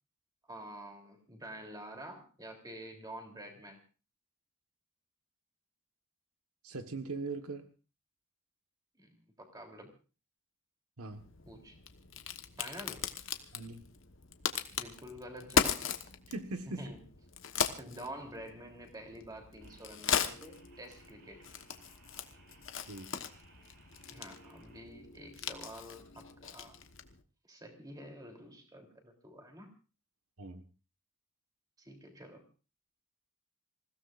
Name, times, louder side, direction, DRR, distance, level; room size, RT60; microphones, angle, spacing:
voice 1, 0.5-3.8 8.9-9.9 11.4-11.8 12.6-13.1 14.7-15.9 16.7-17.1 17.8-21.6 23.6-23.7 24.1-26.7 27.5-29.7 31.8-32.4, right 1 dB, 15° right, 2 dB, 3.3 m, -48 dB
voice 2, 6.6-7.7 11.0-11.2 13.5-13.8 16.3-16.9 22.9-23.1 30.4-30.6, right 3 dB, 80° right, 7 dB, 1.4 m, -40 dB
Crack, 11.1-27.2, left 7 dB, 55° left, 1.2 m, -38 dB
sound 1, 19.6-24.8, right 3 dB, 60° right, 6.8 m, -63 dB
27.0 x 16.5 x 2.5 m, 0.34 s
head